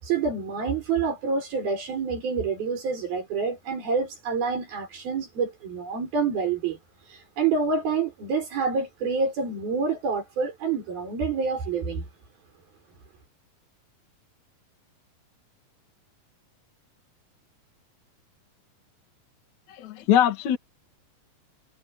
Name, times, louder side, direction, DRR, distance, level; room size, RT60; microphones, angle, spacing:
voice 1, 0.0-6.8 7.1-12.0, right 5 dB, 80° right, 8.5 m, -27 dB
voice 2, 19.8-20.6, left 10 dB, 55° left, 3.2 m, -21 dB
omnidirectional pair, 4.2 m